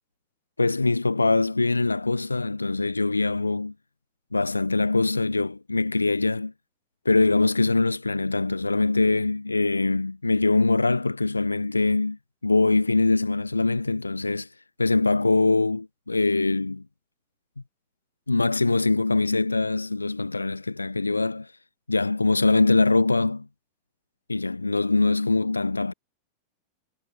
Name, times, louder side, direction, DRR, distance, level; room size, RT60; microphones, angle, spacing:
voice 1, 0.6-3.7 4.3-6.5 7.0-12.2 12.4-14.5 14.8-16.8 18.3-21.5 21.9-23.5 24.3-25.9, left 3 dB, 80° left, 1.6 m, -23 dB
figure-of-eight pair, 90°, 0 cm